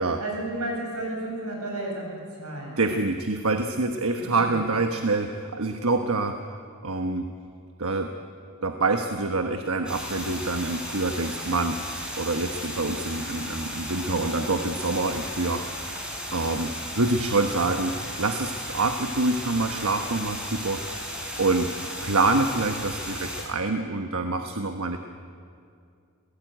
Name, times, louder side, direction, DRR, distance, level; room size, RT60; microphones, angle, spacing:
voice 1, 0.2-2.8 4.2-4.6 14.0-14.4, right 1 dB, 90° right, 0 dB, 8.0 m, -33 dB
voice 2, 2.8-6.4 6.8-7.3 7.8-8.1 8.6-11.8 12.2-15.7 16.3-20.8 21.4-21.7 22.0-25.0, right 3 dB, 70° right, 6 dB, 1.3 m, -26 dB
sound 1, 9.9-23.4, equal, 5° right, 4.9 m, -35 dB
27.5 x 17.5 x 9.3 m, 2.4 s
head